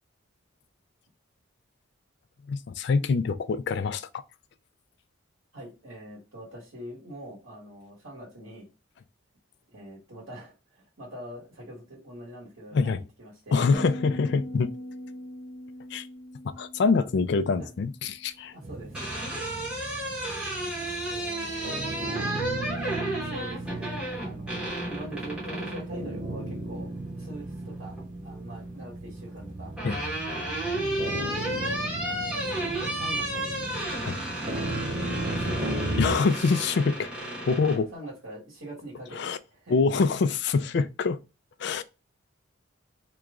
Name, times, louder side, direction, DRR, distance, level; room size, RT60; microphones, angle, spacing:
voice 1, 2.5-4.2 12.7-13.0 13.5-14.7 15.9-16.1 16.4-18.5 29.8-30.0 34.0-34.2 36.0-37.1 37.4-37.9 39.1-39.4 39.7-41.2 41.6-41.8, left 4 dB, 55° left, 0.3 m, -25 dB
voice 2, 5.5-8.7 9.7-13.6 17.6-17.7 18.5-19.1 21.1-22.7 23.1-28.0 28.2-29.7 30.9-33.8 34.4-35.8 37.6-39.8, right 1 dB, 85° right, 1.6 m, -43 dB
sound 1, 13.7-18.0, equal, 15° left, 1.0 m, -40 dB
sound 2, 18.6-36.2, right 2 dB, 40° right, 0.5 m, -36 dB
sound 3, 18.7-25.9 27.4-28.0 29.3-37.8, right 1 dB, 5° right, 0.9 m, -32 dB
3.0 x 2.3 x 3.6 m
head